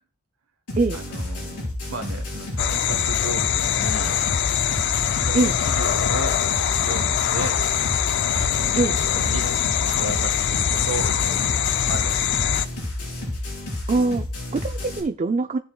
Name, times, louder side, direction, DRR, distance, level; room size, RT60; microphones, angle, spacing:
sound 1, 0.7-15.0, left 1 dB, 85° left, 4.6 m, -31 dB
voice 1, 0.9-4.2 4.9-7.6 8.3-9.5 10.0-12.6, right 3 dB, 65° right, 1.0 m, -35 dB
sound 2, 2.6-12.7, left 10 dB, 50° left, 0.4 m, -23 dB
voice 2, 13.9-15.6, right 3 dB, 30° right, 0.3 m, -23 dB
16.5 x 6.9 x 2.2 m
head